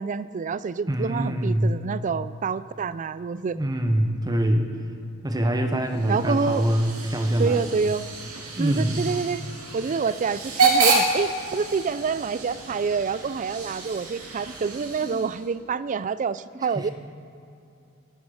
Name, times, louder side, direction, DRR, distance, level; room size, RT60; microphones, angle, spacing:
voice 1, 0.0-3.6 6.1-6.7 7.4-8.1 8.6-9.4 9.7-16.9, right 5 dB, 35° right, 16 dB, 0.3 m, -27 dB
voice 2, 0.9-1.8 3.3-4.7 5.2-7.7 8.6-9.0 15.0-15.3 16.7-16.8, right 1 dB, 20° right, 6 dB, 0.9 m, -24 dB
Hiss / Train / Alarm, 5.9-15.5, right 4 dB, 80° right, 2.5 m, -28 dB
18.0 x 10.0 x 4.9 m, 2.7 s
head